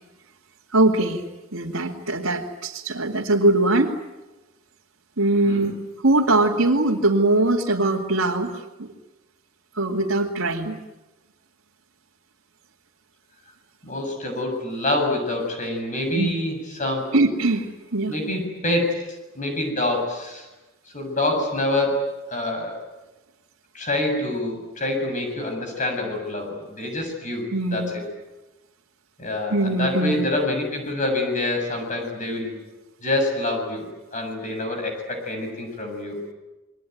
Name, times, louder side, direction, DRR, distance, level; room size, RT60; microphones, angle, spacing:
voice 1, 0.7-1.2 1.5-4.0 5.2-5.7 6.0-8.9 9.8-10.8 16.1-16.3 17.1-18.1 27.5-27.9 29.5-30.2, right 2 dB, 85° right, -2 dB, 2.4 m, -21 dB
voice 2, 13.8-17.1 18.1-18.9 19.3-20.5 20.9-22.0 22.3-22.7 23.7-28.0 29.2-32.6 33.0-36.3, left 1 dB, 40° left, 4 dB, 7.1 m, -26 dB
28.5 x 22.5 x 9.3 m, 1.1 s
head